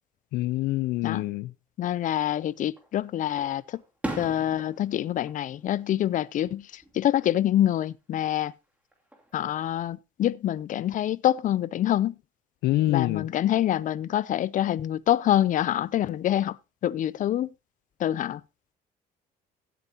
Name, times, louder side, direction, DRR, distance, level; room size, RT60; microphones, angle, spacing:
voice 1, 0.3-1.5 12.6-13.3, left 16 dB, 90° left, 0.7 m, -26 dB
voice 2, 1.8-3.8 4.2-8.5 9.3-12.1 12.9-16.6 16.8-17.5 18.0-18.4, left 12 dB, 50° left, 0.5 m, -26 dB
Fireworks, 2.2-2.9 3.4-6.5 6.8-7.4 8.9-9.7, right 1 dB, 10° right, 2.6 m, -40 dB
16.5 x 8.1 x 2.8 m
cardioid pair, 110°, 17 cm